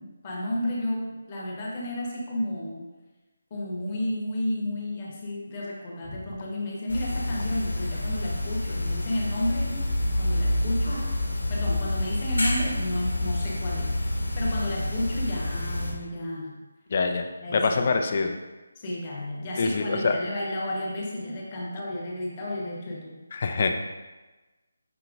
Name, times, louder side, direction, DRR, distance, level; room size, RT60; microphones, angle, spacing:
voice 1, 0.0-2.8 3.5-9.8 10.2-11.1 11.5-14.0 14.4-16.6 17.4-18.0 18.7-23.2, left 1 dB, 30° left, -4 dB, 1.0 m, -32 dB
sound 1, 6.9-15.9, left 1 dB, 90° left, 0.9 m, -28 dB
voice 2, 16.9-17.2 17.5-18.3 19.6-20.1 23.3-23.8, left 4 dB, 45° left, 5 dB, 0.4 m, -24 dB
6.0 x 2.8 x 2.5 m, 1.2 s
figure-of-eight pair, 155°, 0 cm